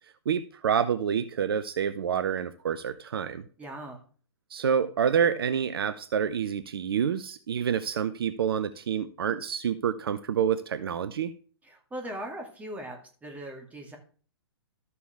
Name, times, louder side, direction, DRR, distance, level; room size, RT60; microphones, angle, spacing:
voice 1, 0.3-3.4 4.5-11.3, right 8 dB, 60° right, 12 dB, 0.7 m, -28 dB
voice 2, 3.6-4.0 11.6-14.0, right 1 dB, 10° right, 2 dB, 2.4 m, -39 dB
13.0 x 6.9 x 3.5 m, 0.42 s
figure-of-eight pair, 115°, 14 cm